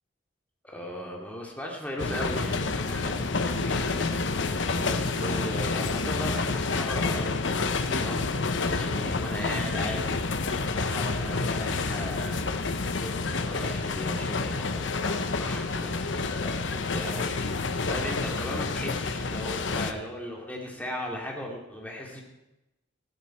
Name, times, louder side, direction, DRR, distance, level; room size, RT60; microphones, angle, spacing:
voice 1, 0.6-8.2 8.7-10.2 10.6-22.2, left 1 dB, 10° left, -1 dB, 2.5 m, -38 dB
sound 1, 2.0-19.9, left 3 dB, 75° left, 0.9 m, -29 dB
14.5 x 13.0 x 4.5 m, 0.93 s
head